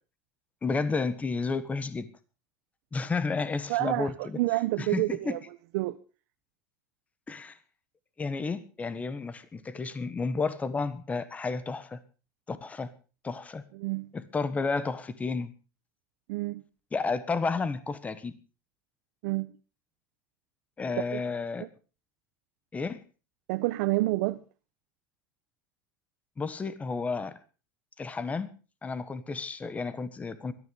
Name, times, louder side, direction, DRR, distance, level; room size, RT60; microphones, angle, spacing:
voice 1, 0.6-2.1 2.9-4.4 4.8-5.4 7.3-7.6 8.2-12.0 12.5-12.9 13.2-13.6 14.1-15.5 16.9-18.3 20.8-21.7 22.7-23.0 26.4-27.3 28.0-28.5 28.8-30.5, left 4 dB, 15° left, 1.4 m, -31 dB
voice 2, 3.7-5.4 5.7-6.0 13.7-14.1 16.3-16.6 19.2-19.5 21.1-21.2 21.6-21.7 23.5-24.4, right 19 dB, 70° right, 0.9 m, -28 dB
17.5 x 13.5 x 5.3 m
supercardioid pair, 140°, 9 cm